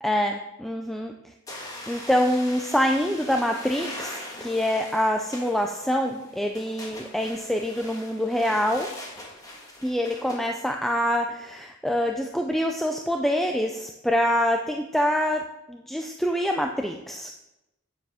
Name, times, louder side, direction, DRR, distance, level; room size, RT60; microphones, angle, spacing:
voice 1, 0.0-1.3 1.9-8.9 9.8-17.3, equal, ahead, 3 dB, 0.3 m, -25 dB
sound 1, 1.5-10.4, left 1 dB, 15° left, 1.4 m, -41 dB
9.2 x 7.5 x 3.5 m, 0.92 s
head